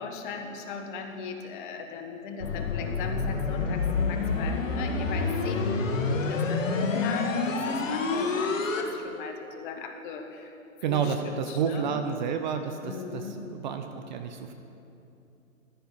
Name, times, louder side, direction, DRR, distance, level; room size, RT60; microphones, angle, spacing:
voice 1, 0.0-7.3 7.8-8.8 9.1-10.2 10.9-11.9 12.8-13.3, left 5 dB, 35° left, 4 dB, 1.4 m, -38 dB
sound 1, 2.4-8.8, left 4 dB, 65° left, 1.6 m, -28 dB
voice 2, 10.8-14.5, right 6 dB, 35° right, 7 dB, 0.7 m, -30 dB
13.0 x 9.3 x 5.5 m, 2.7 s
hypercardioid pair, 130°, 41 cm